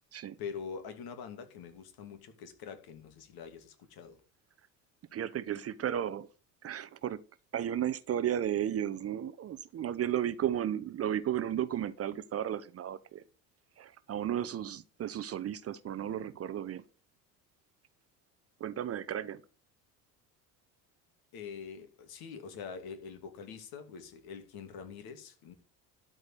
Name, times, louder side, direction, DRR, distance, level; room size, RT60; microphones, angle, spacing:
voice 1, 0.4-4.2 21.3-25.5, left 6 dB, 55° left, 2.5 m, -44 dB
voice 2, 5.1-6.3 6.6-7.2 7.5-13.2 13.8-16.8 18.6-19.4, right 10 dB, 30° right, 0.8 m, -34 dB
12.0 x 4.8 x 8.2 m
hypercardioid pair, 70°, 45 cm